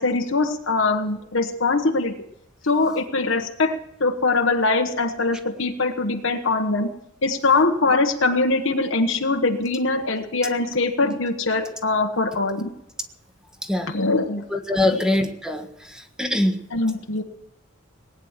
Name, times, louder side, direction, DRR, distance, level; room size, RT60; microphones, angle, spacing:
voice 1, 0.0-2.1 2.6-6.9 7.2-12.7 13.9-14.4 14.9-15.0 16.7-17.2, left 3 dB, 75° left, 3 dB, 1.2 m, -22 dB
voice 2, 14.5-15.6 16.2-16.6, left 1 dB, 5° right, 5 dB, 1.5 m, -22 dB
19.0 x 9.5 x 7.4 m, 0.85 s
head